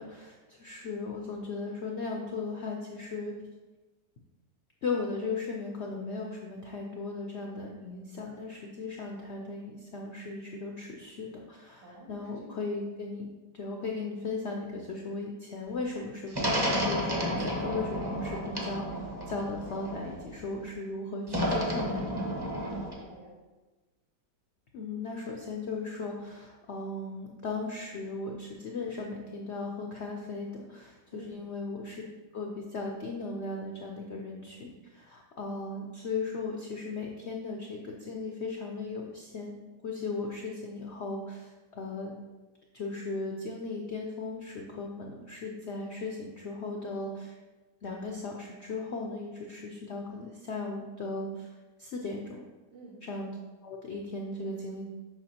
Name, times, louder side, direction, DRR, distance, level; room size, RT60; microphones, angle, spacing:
voice 1, 0.0-3.4 4.8-13.3 13.5-22.3 24.7-32.0 32.3-39.6 39.8-42.1 42.7-47.3 47.8-51.5 51.8-52.4 53.0-53.3 53.6-54.8, left 3 dB, 70° left, 0 dB, 0.6 m, -37 dB
voice 2, 11.8-12.6 22.4-23.3 31.1-31.4 52.7-53.0, right 1 dB, 85° right, -4 dB, 2.3 m, -49 dB
sound 1, 16.3-20.4 21.3-22.9, equal, 20° right, 0.6 m, -31 dB
6.9 x 5.5 x 2.8 m, 1.2 s
omnidirectional pair, 1.9 m